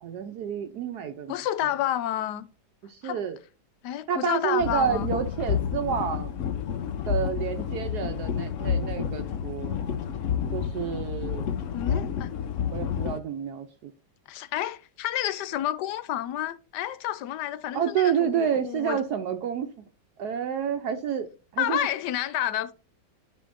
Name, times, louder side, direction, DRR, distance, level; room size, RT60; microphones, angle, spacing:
voice 1, 0.0-1.4 2.8-3.4 4.1-6.3 7.1-9.8 10.5-11.5 11.9-12.1 12.7-13.9 17.7-19.7 20.2-21.3 21.5-21.9, right 8 dB, 70° right, 1.2 m, -29 dB
voice 2, 1.3-2.5 3.0-3.2 3.8-5.1 11.7-12.3 14.3-19.0 21.6-22.7, left 12 dB, 80° left, 1.2 m, -30 dB
sound 1, 4.6-13.2, left 8 dB, 60° left, 0.8 m, -30 dB
12.5 x 5.1 x 2.5 m
omnidirectional pair, 1.8 m